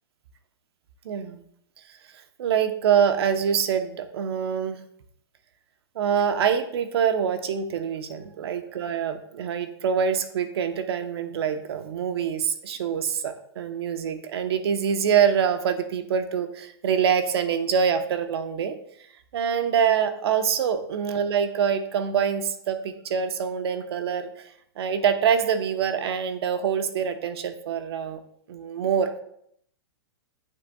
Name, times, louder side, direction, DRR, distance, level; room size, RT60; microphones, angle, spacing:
voice 1, 1.0-1.4 2.4-4.8 5.9-18.7 19.3-24.5 24.8-28.2 28.5-29.1, right 7 dB, 65° right, 8 dB, 0.9 m, -25 dB
8.4 x 8.0 x 2.3 m, 0.69 s
hypercardioid pair, 150°, 14 cm